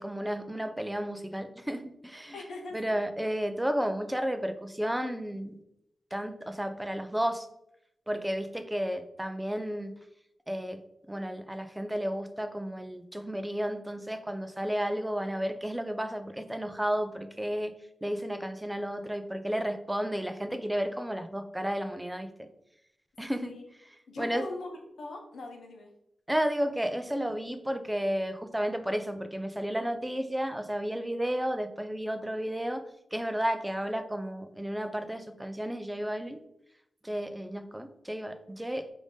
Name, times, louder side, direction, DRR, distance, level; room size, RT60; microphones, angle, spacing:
voice 1, 0.0-2.4 2.7-5.6 6.1-7.5 8.1-9.9 10.5-10.8 11.1-17.7 18.0-22.5 23.2-24.5 26.3-32.8 33.1-36.4 37.0-38.9, equal, 5° right, 8 dB, 0.3 m, -32 dB
voice 2, 2.3-3.0 23.3-23.6 24.1-24.7 25.0-25.9, left 2 dB, 80° left, 2 dB, 0.8 m, -41 dB
4.9 x 2.6 x 3.4 m, 0.79 s
wide cardioid pair, 165°, 0 cm